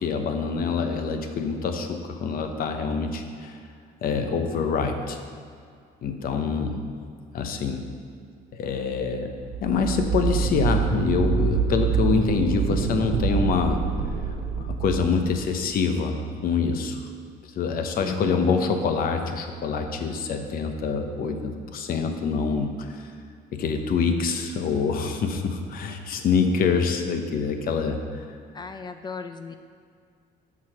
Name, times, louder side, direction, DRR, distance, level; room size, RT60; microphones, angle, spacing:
voice 1, 0.0-3.6 4.0-5.2 6.0-6.8 7.3-7.9 8.5-9.3 9.6-13.8 14.5-17.0 17.6-23.1 23.5-28.3, left 5 dB, 60° left, 5 dB, 0.9 m, -25 dB
sound 1, 9.4-15.8, right 5 dB, 90° right, 0.8 m, -26 dB
voice 2, 12.2-12.6 18.0-18.6 28.5-29.5, left 5 dB, 25° left, 8 dB, 0.4 m, -36 dB
7.3 x 6.1 x 5.9 m, 2.2 s
cardioid pair, 110°, 17 cm